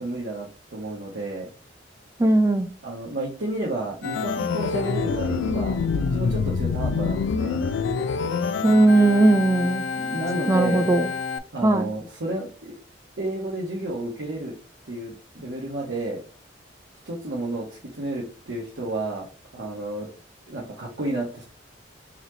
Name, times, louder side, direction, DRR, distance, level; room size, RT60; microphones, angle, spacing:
voice 1, 0.0-1.5 2.8-7.6 10.0-10.8 11.5-12.7 13.2-14.5 14.9-16.2 17.1-19.3 19.5-20.1 20.5-21.4, right 2 dB, 70° right, 1.0 m, -31 dB
voice 2, 2.2-2.7 8.6-9.8 10.5-11.1 11.6-11.9, right 2 dB, 15° right, 0.3 m, -18 dB
Organ, 4.0-11.4, left 5 dB, 75° left, 0.3 m, -26 dB
4.0 x 3.0 x 2.7 m
head